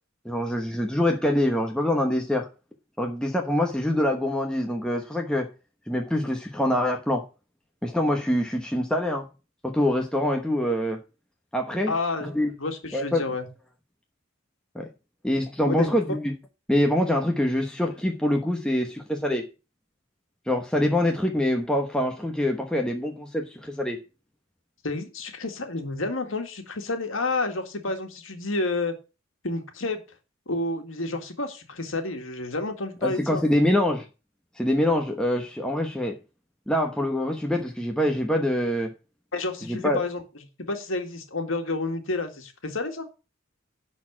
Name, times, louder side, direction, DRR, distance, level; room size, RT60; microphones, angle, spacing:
voice 1, 0.2-2.5 3.0-5.5 5.9-7.3 7.8-9.3 9.6-11.0 11.5-11.9 12.2-12.5 12.9-13.2 14.7-14.9 15.2-16.3 16.7-19.4 20.5-24.0 33.0-34.1 34.6-36.2 36.7-38.9 39.7-40.0, left 1 dB, 5° left, 1.0 m, -25 dB
voice 2, 11.9-13.5 15.7-15.9 24.8-28.9 29.4-30.0 30.5-33.4 39.3-40.2 40.6-43.1, left 2 dB, 70° left, 1.9 m, -30 dB
11.0 x 4.3 x 7.2 m
head